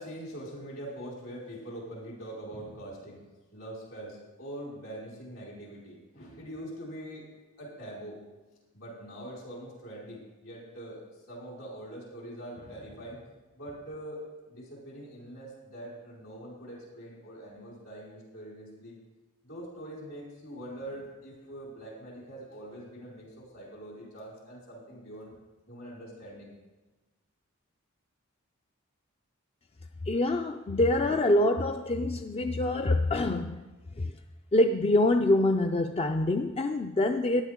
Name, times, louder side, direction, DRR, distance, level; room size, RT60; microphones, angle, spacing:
voice 1, 0.0-3.2 3.5-7.3 7.6-8.2 8.7-11.0 11.3-13.2 13.5-14.2 14.5-19.0 19.4-25.4 25.7-26.5, right 1 dB, 70° left, -4 dB, 4.8 m, -43 dB
voice 2, 30.1-33.6 34.0-34.1 34.5-37.4, left 1 dB, 25° left, 6 dB, 0.4 m, -25 dB
14.5 x 10.5 x 3.7 m, 1.1 s
head